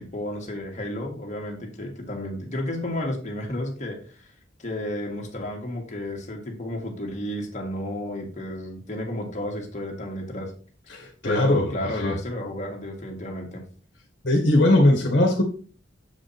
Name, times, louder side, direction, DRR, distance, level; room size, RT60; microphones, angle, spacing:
voice 1, 0.0-4.3 4.6-10.5 10.9-13.6, left 1 dB, 40° left, 1 dB, 1.9 m, -32 dB
voice 2, 10.9-12.2 14.2-15.4, left 1 dB, 55° left, 2 dB, 1.7 m, -20 dB
7.4 x 5.0 x 4.3 m, 0.40 s
head